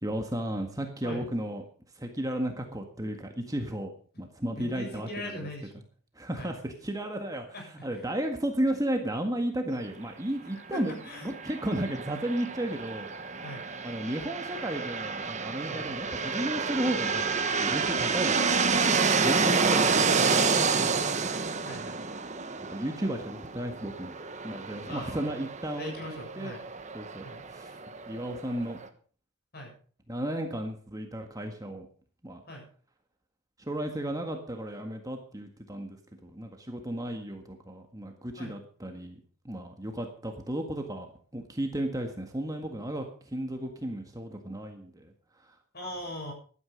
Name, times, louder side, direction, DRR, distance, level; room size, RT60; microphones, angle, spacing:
voice 1, 0.0-1.6 1.9-3.9 4.2-5.5 6.1-10.9 11.2-13.1 13.8-18.8 19.1-19.8 20.3-21.0 22.6-24.2 24.4-26.5 26.9-27.2 27.5-27.8 28.1-28.8 30.1-31.9 32.2-32.4 33.6-39.2 39.4-41.1 41.3-45.5, right 1 dB, 15° right, 4 dB, 1.7 m, -34 dB
voice 2, 4.6-5.8 6.4-6.5 7.5-7.6 7.9-8.1 10.7-11.3 13.4-13.6 15.7-15.9 19.5-20.0 21.7-22.0 24.9-25.3 25.7-26.6 27.2-27.4 29.5-29.7 32.5-32.7 38.4-38.5 45.7-46.3, equal, 45° left, 1 dB, 7.6 m, -40 dB
sound 1, 11.3-28.9, right 5 dB, 30° right, 1.2 m, -29 dB
15.5 x 12.0 x 5.2 m, 0.43 s
head